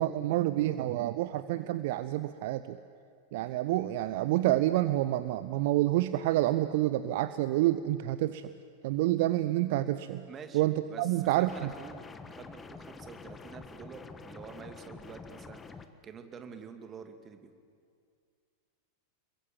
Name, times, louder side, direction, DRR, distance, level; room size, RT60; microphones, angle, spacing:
voice 1, 0.0-2.8 3.3-8.5 8.8-10.2 10.5-11.7, right 15 dB, 50° right, 13 dB, 0.7 m, -28 dB
voice 2, 10.3-10.6 10.9-12.0 12.3-15.6 16.0-17.5, right 6 dB, 25° right, 7 dB, 2.3 m, -47 dB
sound 1, 11.5-15.9, left 4 dB, 15° left, 1.4 m, -47 dB
28.5 x 22.5 x 7.8 m, 2.2 s
figure-of-eight pair, 90°, 0 cm